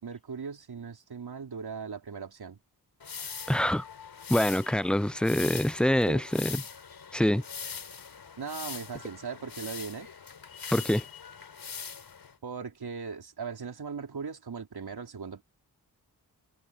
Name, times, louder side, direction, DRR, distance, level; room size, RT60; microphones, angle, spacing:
voice 1, 0.0-2.6 6.1-6.2 8.4-10.1 12.4-15.4, right 5 dB, 75° right, 4.4 m, -38 dB
sound 1, 3.0-12.3, left 6 dB, 75° left, 5.0 m, -42 dB
voice 2, 3.5-3.8 4.3-6.6 7.1-7.4 10.7-11.0, left 1 dB, 5° left, 0.4 m, -25 dB
cardioid pair, 50°, 39 cm